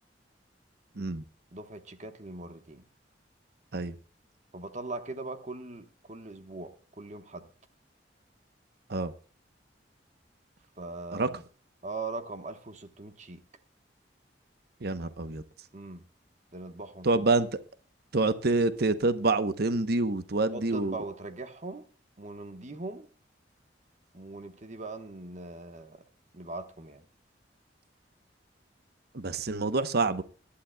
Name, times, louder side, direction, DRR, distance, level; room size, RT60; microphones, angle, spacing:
voice 1, 1.5-2.8 4.5-7.5 10.8-11.4 11.8-13.4 15.7-16.0 16.5-17.3 20.5-21.9 22.2-23.1 24.1-26.0 26.3-27.0, right 3 dB, 40° right, 1.2 m, -40 dB
voice 2, 14.8-15.4 17.0-17.5 18.1-21.0 29.1-30.2, right 3 dB, 60° right, 0.9 m, -27 dB
22.5 x 11.5 x 2.3 m
head